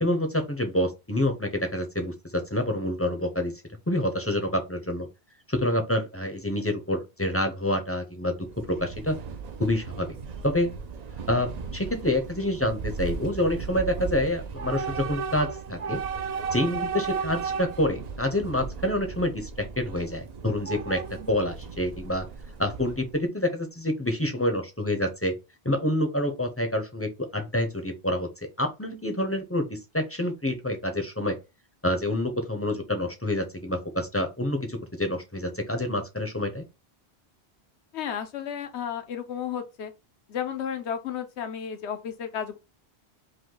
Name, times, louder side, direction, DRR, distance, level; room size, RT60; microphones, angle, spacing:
voice 1, 0.0-3.5 3.9-5.1 5.5-8.4 8.7-9.2 9.6-10.1 10.4-10.7 11.3-16.0 16.5-22.3 22.6-25.3 25.6-28.3 28.6-31.4 31.8-36.6, left 1 dB, 15° left, 0.6 m, -27 dB
Train / Subway metro underground, 8.4-23.2, right 5 dB, 50° right, 0.5 m, -35 dB
voice 2, 37.9-39.9 40.3-42.6, left 8 dB, 85° left, 1.0 m, -33 dB
5.2 x 2.2 x 3.9 m
omnidirectional pair, 1.1 m